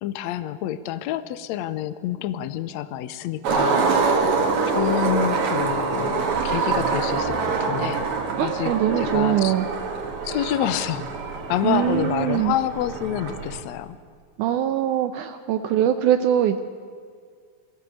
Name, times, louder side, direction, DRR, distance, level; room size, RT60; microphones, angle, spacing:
voice 1, 0.0-3.9 4.7-9.5 10.2-11.0 11.5-14.0, left 11 dB, 75° left, 14 dB, 1.7 m, -28 dB
Skateboard, 3.4-13.6, right 4 dB, 60° right, 3.0 m, -25 dB
voice 2, 8.4-9.7 11.6-12.5 14.4-16.6, right 11 dB, 75° right, 9 dB, 2.0 m, -22 dB
21.0 x 16.0 x 8.4 m, 2.1 s
omnidirectional pair, 4.0 m